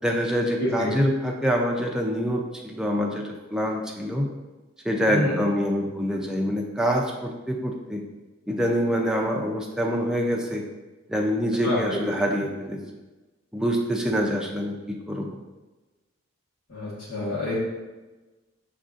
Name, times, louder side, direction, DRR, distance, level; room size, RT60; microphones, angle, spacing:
voice 1, 0.0-4.3 4.8-8.0 8.5-10.6 11.1-12.8 13.5-15.3, equal, 5° right, 0 dB, 0.4 m, -25 dB
voice 2, 0.6-0.9 5.1-5.4 11.6-12.1 16.7-17.5, left 1 dB, 80° left, -9 dB, 1.2 m, -27 dB
6.4 x 2.6 x 2.5 m, 1.2 s
head